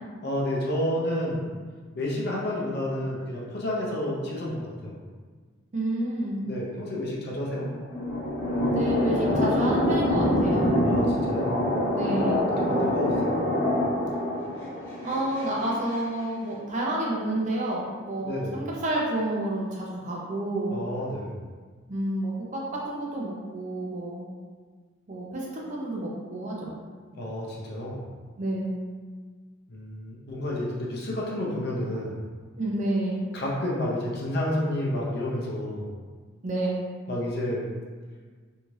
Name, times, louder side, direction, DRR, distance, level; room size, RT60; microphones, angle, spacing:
voice 1, 0.2-1.5 1.9-5.0 6.4-7.7 10.8-11.6 12.6-13.4 18.2-18.6 20.7-21.4 27.1-28.1 29.7-32.2 33.3-35.9 37.1-37.7, left 1 dB, 50° left, -4 dB, 0.6 m, -30 dB
voice 2, 5.7-6.5 8.7-10.8 11.9-12.5 15.0-20.8 21.9-24.3 25.1-26.8 28.4-28.8 32.6-33.3 36.4-36.9, right 1 dB, 35° right, -3 dB, 0.4 m, -29 dB
sound 1, 7.6-16.0, left 1 dB, 15° left, 1.1 m, -25 dB
2.7 x 2.3 x 3.1 m, 1.5 s
head